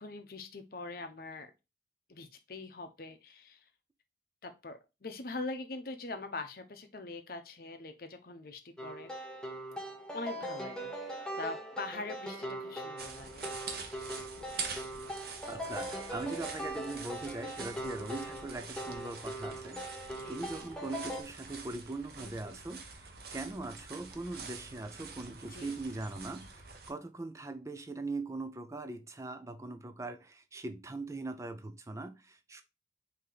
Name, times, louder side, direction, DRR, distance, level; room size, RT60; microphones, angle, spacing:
voice 1, 0.0-1.5 2.1-3.7 4.4-9.1 10.1-10.9 11.3-13.6 20.2-20.7 22.2-22.6 25.5-25.7, left 3 dB, 55° left, 0.7 m, -43 dB
sound 1, 8.8-21.2, right 1 dB, 5° left, 0.8 m, -41 dB
sound 2, 13.0-26.9, right 5 dB, 60° right, 0.8 m, -46 dB
voice 2, 15.5-32.6, right 2 dB, 15° right, 0.4 m, -41 dB
4.9 x 2.8 x 3.8 m
head